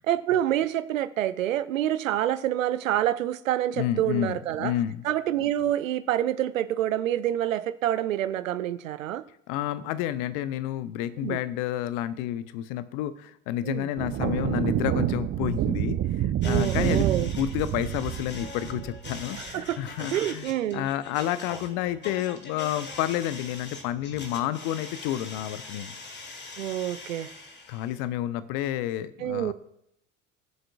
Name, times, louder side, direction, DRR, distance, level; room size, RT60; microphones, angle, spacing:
voice 1, 0.0-4.7 5.0-9.2 11.2-11.4 13.6-13.9 16.4-17.3 19.3-20.9 26.6-27.3 29.2-29.5, right 12 dB, 80° right, 14 dB, 0.7 m, -27 dB
voice 2, 3.8-5.0 9.5-20.5 20.7-25.9 27.7-29.5, left 12 dB, 55° left, 14 dB, 0.8 m, -30 dB
sound 1, 14.0-19.6, right 11 dB, 35° right, 0.6 m, -28 dB
sound 2, 16.4-28.0, left 3 dB, 25° left, 1.8 m, -42 dB
20.5 x 7.6 x 2.3 m, 0.76 s
figure-of-eight pair, 65°, 39 cm